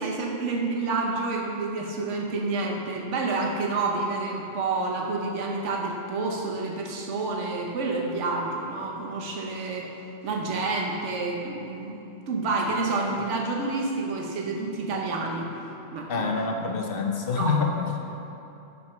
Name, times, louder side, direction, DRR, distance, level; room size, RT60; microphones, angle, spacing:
voice 1, 0.0-9.8 10.2-12.0 12.3-15.5 15.9-16.3 17.4-17.6, right 3 dB, 80° right, -1 dB, 1.2 m, -29 dB
voice 2, 16.1-17.7 18.1-18.2, left 4 dB, 55° left, 2 dB, 0.8 m, -26 dB
8.2 x 5.5 x 5.7 m, 2.9 s
omnidirectional pair, 1.2 m